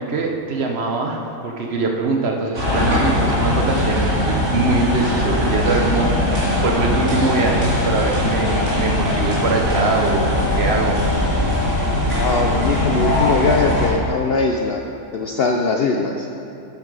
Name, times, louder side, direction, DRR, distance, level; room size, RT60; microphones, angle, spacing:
voice 1, 0.0-11.0, right 3 dB, 55° right, 2 dB, 0.9 m, -22 dB
sound 1, 2.5-13.9, left 1 dB, 70° right, 2.8 m, -20 dB
sound 2, 7.4-7.5 7.8-7.9 8.2-8.3 8.6-8.7 9.1-9.2 9.5-9.6 10.0-10.1 10.4-10.5 10.8-10.9 11.2-11.3 11.6-11.7 12.1-12.2, right 1 dB, 30° right, 1.7 m, -30 dB
voice 2, 12.1-14.8 15.1-16.3, left 3 dB, 65° left, 2 dB, 0.6 m, -21 dB
8.4 x 7.7 x 4.8 m, 2.9 s
omnidirectional pair, 1.5 m